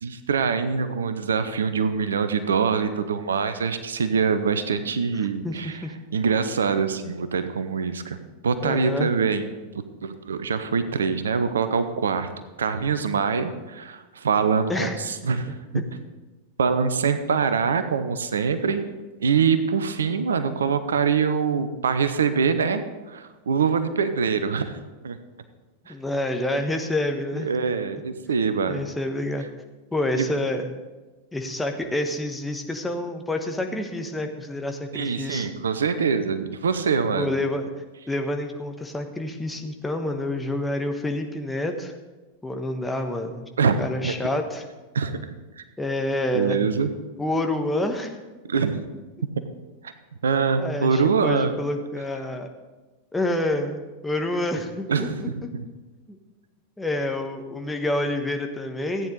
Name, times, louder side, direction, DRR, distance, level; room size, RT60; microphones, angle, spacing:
voice 1, 0.0-5.8 6.1-8.2 8.4-12.3 12.6-15.8 16.6-18.8 19.2-24.7 25.0-25.2 25.9-26.0 27.3-28.8 30.2-30.3 34.9-37.3 43.6-44.1 44.9-45.6 46.3-46.9 48.5-48.8 49.8-49.9 50.2-51.5 54.9-55.6, right 5 dB, 70° right, 11 dB, 0.7 m, -24 dB
voice 2, 8.6-9.1 14.7-15.0 25.9-27.5 28.7-29.5 29.9-30.7 31.3-35.5 37.2-37.7 38.1-41.9 42.4-43.5 43.8-44.6 45.8-46.6 47.2-48.1 50.6-52.5 53.1-55.5 56.8-59.1, left 1 dB, 10° left, 4 dB, 1.1 m, -28 dB
14.5 x 9.1 x 3.9 m, 1.2 s
figure-of-eight pair, 90°, 0 cm